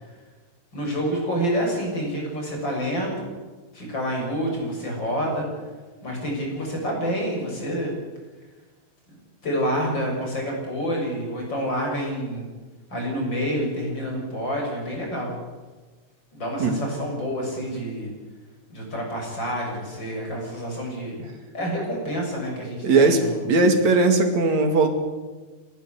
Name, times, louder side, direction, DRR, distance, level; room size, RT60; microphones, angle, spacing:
voice 1, 0.7-3.3 3.7-5.5 6.0-7.9 9.1-9.2 9.4-12.5 12.9-15.4 16.3-18.1 18.7-21.2 21.5-23.4, equal, 35° left, 0 dB, 7.6 m, -28 dB
voice 2, 22.8-24.9, right 3 dB, 65° right, 6 dB, 3.5 m, -19 dB
30.0 x 13.5 x 8.2 m, 1.3 s
omnidirectional pair, 3.5 m